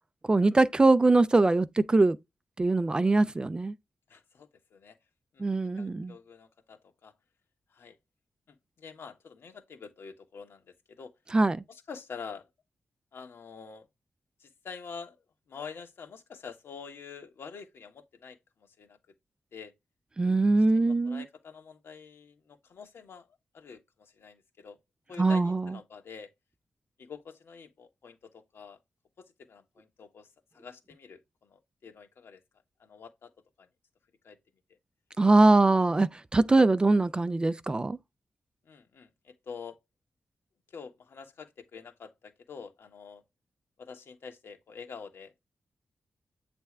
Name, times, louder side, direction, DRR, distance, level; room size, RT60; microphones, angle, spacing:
voice 1, 0.3-2.2 2.6-3.7 5.4-6.1 11.3-11.6 20.2-21.2 25.2-25.7 35.2-38.0, right 2 dB, 20° right, 0.4 m, -22 dB
voice 2, 4.1-5.0 5.3-5.4 5.8-7.1 7.7-8.0 8.5-11.1 11.7-12.5 13.1-13.9 14.4-15.2 15.5-19.0 19.5-19.7 20.6-23.3 23.5-24.8 25.1-26.3 27.0-28.8 29.2-30.3 30.5-32.4 32.8-33.3 33.6-33.7 34.2-34.4 38.6-39.8 40.7-43.2 43.8-45.4, left 6 dB, 70° left, 1.6 m, -47 dB
8.4 x 3.3 x 3.3 m
wide cardioid pair, 150°, 4 cm